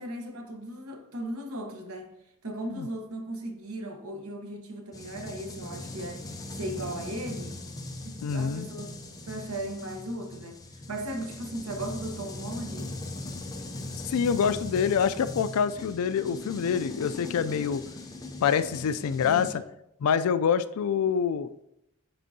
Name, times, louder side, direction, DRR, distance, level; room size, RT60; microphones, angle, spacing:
voice 1, 0.0-2.1 2.4-6.3 6.6-7.6 8.0-8.9 9.3-10.6 10.9-12.9 19.2-19.7, right 1 dB, 90° right, 1.0 m, -37 dB
sound 1, 4.9-19.6, left 2 dB, 15° left, 0.6 m, -40 dB
voice 2, 8.2-8.7 14.1-17.8 18.4-19.5 20.0-21.5, left 7 dB, 85° left, 0.3 m, -26 dB
9.5 x 3.6 x 2.7 m
head